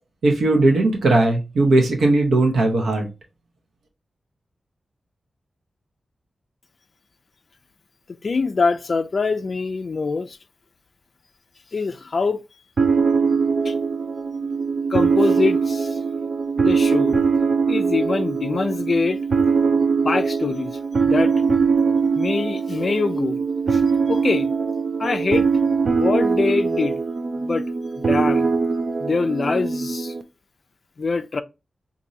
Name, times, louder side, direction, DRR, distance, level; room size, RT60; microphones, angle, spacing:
voice 1, 0.2-3.1, right 2 dB, 90° right, 0.9 m, -18 dB
voice 2, 8.2-10.4 11.7-12.4 13.7-13.8 14.9-16.0 16.6-17.1 17.7-19.2 20.0-21.3 22.2-23.4 23.7-23.8 24.1-24.5 25.0-25.5 25.9-27.0 27.4-27.7 28.0-28.5 29.0-30.1 31.0-31.4, left 4 dB, 45° left, 0.3 m, -24 dB
sound 1, 12.8-30.2, right 5 dB, 50° right, 0.4 m, -21 dB
4.2 x 2.6 x 2.6 m
wide cardioid pair, 165°, 0 cm